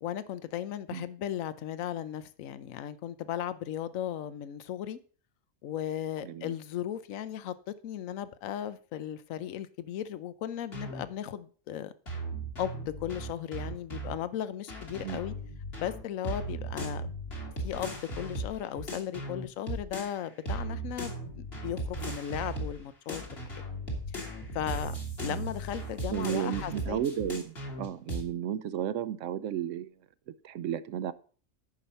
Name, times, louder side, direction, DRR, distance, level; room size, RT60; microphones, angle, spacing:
voice 1, 0.0-5.0 5.6-7.5 7.8-11.9 12.6-15.3 15.8-17.1 17.6-23.4 24.2-27.0, left 10 dB, 75° left, 1.1 m, -36 dB
voice 2, 6.2-6.5 15.0-15.2 25.2-25.4 26.1-29.9 30.3-31.1, right 10 dB, 70° right, 0.9 m, -33 dB
sound 1, 10.7-11.0 12.1-14.2 14.7-20.2 20.5-22.8 23.1-28.2, right 1 dB, 45° left, 2.5 m, -37 dB
10.5 x 5.9 x 5.4 m
omnidirectional pair, 1.4 m